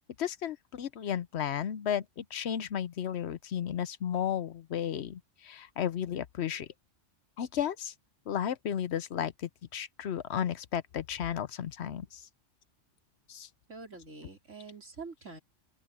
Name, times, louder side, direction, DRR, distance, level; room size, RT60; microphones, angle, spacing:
voice 1, 0.2-6.7 7.4-7.9 8.3-12.2 13.3-13.5, left 9 dB, 65° left, 0.9 m, -34 dB
voice 2, 13.7-15.4, right 4 dB, 85° right, 4.5 m, -45 dB
open air
omnidirectional pair, 1.3 m